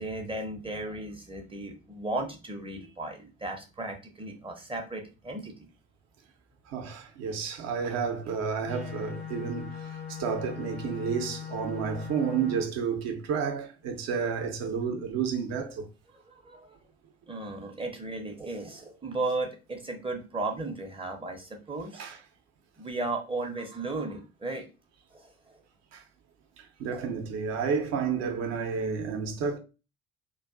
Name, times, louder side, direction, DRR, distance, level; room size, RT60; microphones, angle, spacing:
voice 1, 0.0-5.5 16.1-16.8 17.3-22.0 22.8-24.7 25.1-25.6 26.9-27.0, right 2 dB, 15° right, 0.6 m, -35 dB
voice 2, 6.7-15.9 21.9-22.2 25.9-26.0 26.8-29.6, right 6 dB, 55° right, 0.6 m, -31 dB
sound 1, 8.7-12.6, left 8 dB, 85° left, 0.8 m, -40 dB
2.3 x 2.2 x 2.3 m
figure-of-eight pair, 45°, 32 cm